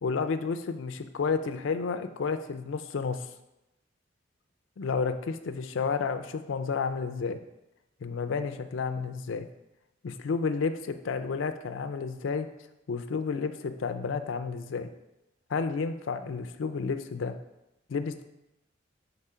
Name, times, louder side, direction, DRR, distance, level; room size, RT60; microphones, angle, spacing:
voice 1, 0.0-3.3 4.8-7.4 8.0-9.5 10.0-12.5 12.9-14.9 15.5-17.4 17.9-18.2, left 5 dB, 80° left, 8 dB, 0.4 m, -31 dB
4.9 x 4.1 x 5.5 m, 0.92 s
head